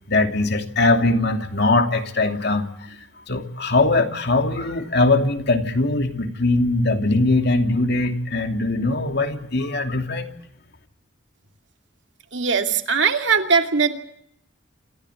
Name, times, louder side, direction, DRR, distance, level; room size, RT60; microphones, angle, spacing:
voice 1, 0.1-3.0 3.3-10.3, left 2 dB, 60° left, 5 dB, 2.8 m, -21 dB
voice 2, 12.3-13.9, right 5 dB, 65° right, 5 dB, 2.6 m, -20 dB
27.5 x 15.5 x 9.8 m, 0.71 s
head